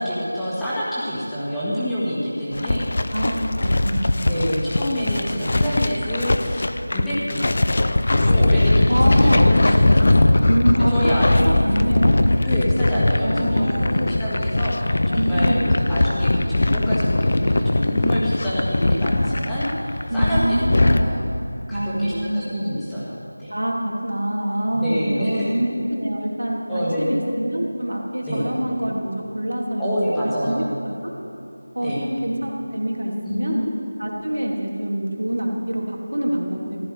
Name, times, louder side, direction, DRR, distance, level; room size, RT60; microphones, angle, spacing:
voice 1, 0.0-2.9 4.2-6.6 6.9-7.5 8.1-10.4 10.9-11.5 12.4-21.3 21.7-23.1 23.4-23.5 24.7-25.5 26.7-27.1 28.2-28.5 29.8-30.7 31.8-32.0 33.2-33.6, equal, ahead, -12 dB, 1.7 m, -27 dB
sound 1, 2.5-21.0, left 2 dB, 45° left, 0.6 m, -20 dB
voice 2, 3.6-4.1 8.9-9.8 10.5-10.9 11.5-12.2 13.2-14.0 15.1-15.6 20.1-21.0 21.7-22.5 23.5-30.6 31.0-31.1 31.7-33.6 34.0-36.9, right 1 dB, 90° right, -1 dB, 2.9 m, -25 dB
14.5 x 13.0 x 4.9 m, 2.8 s
figure-of-eight pair, 175°, 0 cm